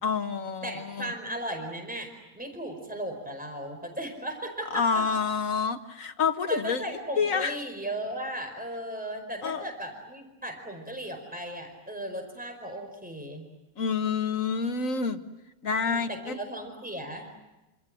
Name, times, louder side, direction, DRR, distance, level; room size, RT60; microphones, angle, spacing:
voice 1, 0.0-1.1 4.7-6.8 7.2-7.5 9.4-9.6 13.8-15.2 15.6-16.4, left 5 dB, 65° left, 8 dB, 1.8 m, -28 dB
voice 2, 0.6-5.0 6.5-13.5 15.9-17.3, right 1 dB, 5° right, 4 dB, 4.8 m, -36 dB
27.5 x 27.0 x 7.7 m, 1.0 s
omnidirectional pair, 1.5 m